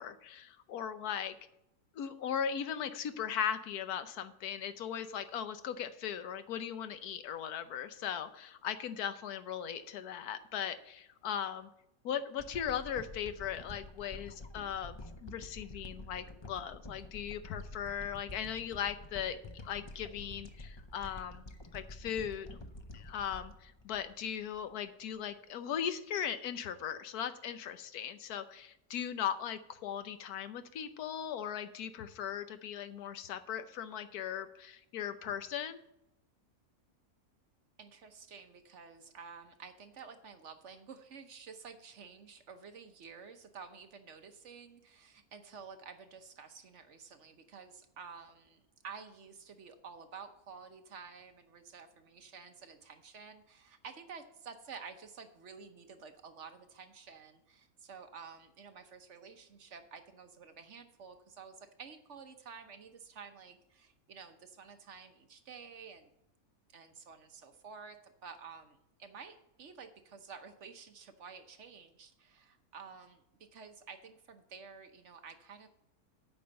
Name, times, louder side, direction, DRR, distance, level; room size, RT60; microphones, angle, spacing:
voice 1, 0.0-1.3 1.9-11.7 12.0-19.4 19.6-21.4 21.7-22.6 22.9-35.8, left 9 dB, 85° left, 11 dB, 1.3 m, -38 dB
sound 1, 12.4-24.7 25.2-25.3, left 2 dB, 40° left, 0.4 m, -49 dB
voice 2, 37.8-66.1 66.7-73.2 73.5-75.7, right 5 dB, 55° right, 7 dB, 1.1 m, -51 dB
8.7 x 5.5 x 7.6 m, 0.85 s
omnidirectional pair, 1.6 m